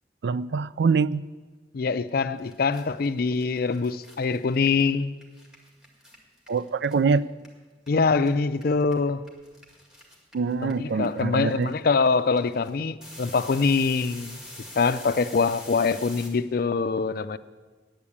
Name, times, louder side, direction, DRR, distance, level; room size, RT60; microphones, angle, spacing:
voice 1, 0.2-1.3 6.5-7.3 10.3-11.7, right 5 dB, 70° right, 0.4 m, -24 dB
voice 2, 1.7-5.1 7.9-9.2 10.6-14.4 14.8-17.4, left 4 dB, 55° left, 0.4 m, -24 dB
sound 1, 2.1-2.2 2.4-7.9 8.2-16.3, left 1 dB, 5° right, 1.9 m, -45 dB
9.5 x 8.7 x 8.4 m
head